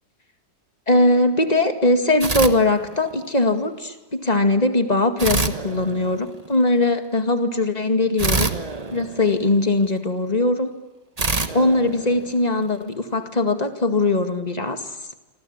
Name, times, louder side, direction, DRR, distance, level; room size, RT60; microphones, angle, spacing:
voice 1, 0.9-8.5 8.9-10.7 11.5-14.8, left 2 dB, 20° left, 7 dB, 2.0 m, -20 dB
sound 1, 2.2-3.3 5.2-6.6 8.2-9.9 11.2-12.7, right 3 dB, 25° right, 1.3 m, -26 dB
27.5 x 25.0 x 8.8 m, 1.1 s
omnidirectional pair, 1.9 m